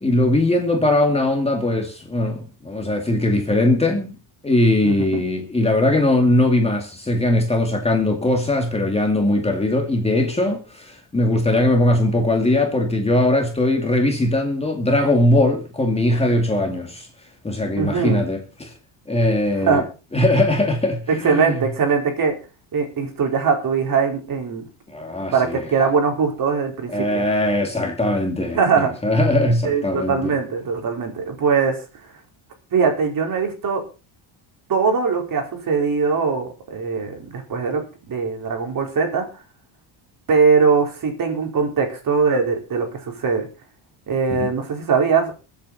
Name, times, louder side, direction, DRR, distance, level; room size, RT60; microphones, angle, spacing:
voice 1, 0.0-4.1 4.4-17.1 17.4-18.7 19.1-19.8 20.1-21.6 24.9-25.6 26.9-30.3 44.3-44.5, left 1 dB, 10° left, 2.3 m, -20 dB
voice 2, 17.8-18.3 19.6-19.8 21.1-22.3 22.7-24.6 25.3-27.2 28.5-28.9 29.6-31.8 32.7-33.8 34.7-39.3 40.3-43.5 44.1-45.3, right 5 dB, 40° right, 4.6 m, -21 dB
22.5 x 8.5 x 4.2 m
cardioid pair, 160°, 49 cm